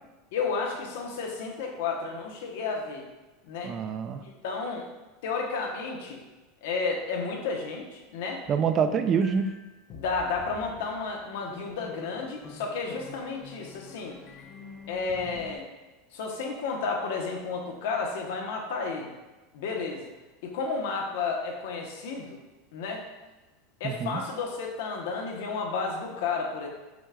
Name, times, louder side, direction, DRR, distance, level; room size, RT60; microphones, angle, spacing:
voice 1, 0.3-3.1 3.4-3.7 4.2-4.8 5.2-6.2 6.6-8.4 9.9-14.2 14.9-15.7 16.1-19.1 19.5-20.1 20.4-22.4 22.7-23.0 23.8-26.7, left 4 dB, 75° left, 1 dB, 0.9 m, -32 dB
voice 2, 3.6-4.2 8.5-9.5 23.8-24.2, right 6 dB, 30° right, 8 dB, 0.3 m, -26 dB
sound 1, 9.2-15.6, left 5 dB, 35° left, 0.5 m, -48 dB
6.0 x 3.4 x 2.2 m, 1.1 s
supercardioid pair, 135°, 0 cm